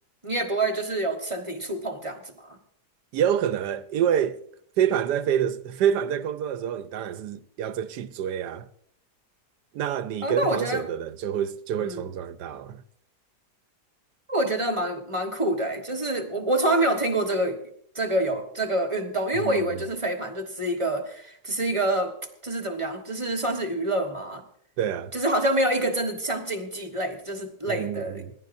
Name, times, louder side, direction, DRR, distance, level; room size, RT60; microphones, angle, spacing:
voice 1, 0.2-2.6 10.2-10.9 11.8-12.0 14.3-17.6 17.9-22.1 22.4-24.4 25.1-28.2, right 1 dB, 20° right, 1.3 m, -27 dB
voice 2, 3.1-4.4 4.8-8.7 9.7-12.8 19.3-19.8 24.8-25.1 27.7-28.3, right 9 dB, 85° right, 1.3 m, -27 dB
27.5 x 11.5 x 2.6 m
omnidirectional pair, 1.8 m